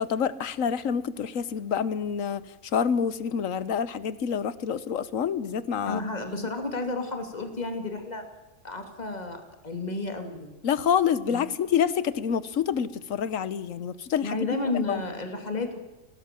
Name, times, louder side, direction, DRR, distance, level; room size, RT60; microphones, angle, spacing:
voice 1, 0.0-2.4 2.7-6.0 10.6-14.5 14.7-15.0, left 7 dB, 70° left, 16 dB, 1.4 m, -27 dB
voice 2, 5.9-8.3 8.6-10.5 11.3-11.5 14.2-15.8, left 3 dB, 30° left, 5 dB, 2.7 m, -32 dB
21.5 x 17.5 x 7.5 m, 1.1 s
omnidirectional pair, 1.5 m